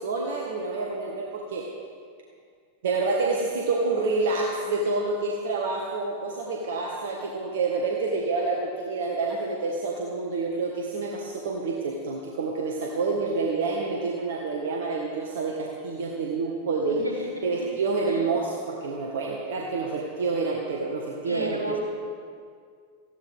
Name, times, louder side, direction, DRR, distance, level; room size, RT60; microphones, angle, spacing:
voice 1, 0.0-1.7 2.8-17.1 17.4-21.8, right 3 dB, 60° right, -1 dB, 1.6 m, -28 dB
voice 2, 16.9-17.5 18.1-18.3 21.2-21.8, right 1 dB, 85° right, -1 dB, 2.6 m, -32 dB
18.5 x 15.5 x 3.6 m, 2.1 s
figure-of-eight pair, 90°, 0 cm